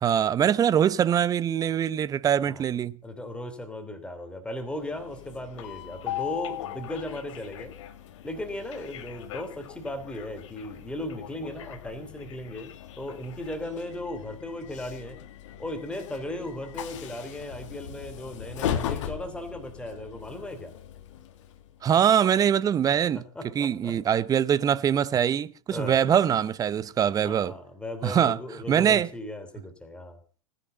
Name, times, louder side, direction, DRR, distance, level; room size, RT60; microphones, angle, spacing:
voice 1, 0.0-3.0 21.8-23.2 23.5-27.5 28.0-28.4 28.7-29.1, right 9 dB, 20° right, 0.8 m, -23 dB
voice 2, 3.0-7.7 8.2-15.2 15.6-20.7 23.1-24.0 25.7-26.0 27.2-30.2, left 1 dB, 5° left, 3.1 m, -37 dB
Train, 4.6-21.8, left 10 dB, 55° left, 2.2 m, -39 dB
19.5 x 10.0 x 6.8 m
figure-of-eight pair, 105°, 18 cm